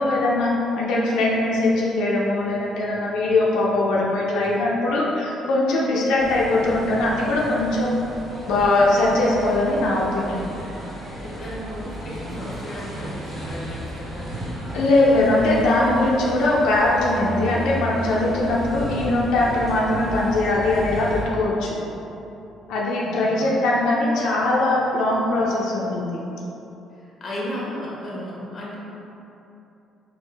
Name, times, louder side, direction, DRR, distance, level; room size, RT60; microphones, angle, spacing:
voice 1, 0.0-8.0 8.5-10.5 14.7-21.8 22.7-26.2, left 2 dB, 85° left, -4 dB, 0.6 m, -21 dB
sound 1, 6.2-21.2, equal, 25° right, 1.5 m, -33 dB
voice 2, 11.2-14.7 23.0-23.5 26.9-28.8, equal, 30° left, -5 dB, 1.0 m, -35 dB
4.5 x 2.9 x 3.3 m, 2.9 s
cardioid pair, 155°, 0 cm